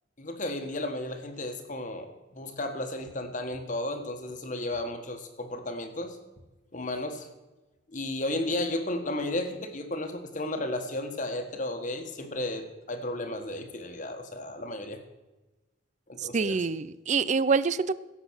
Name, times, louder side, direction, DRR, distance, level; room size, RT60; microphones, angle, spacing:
voice 1, 0.2-6.2 6.7-7.3 7.9-15.0 16.1-16.6, left 1 dB, 40° left, 7 dB, 1.5 m, -33 dB
voice 2, 16.2-17.9, right 5 dB, 40° right, 17 dB, 0.4 m, -26 dB
16.0 x 7.2 x 6.4 m, 1.1 s
head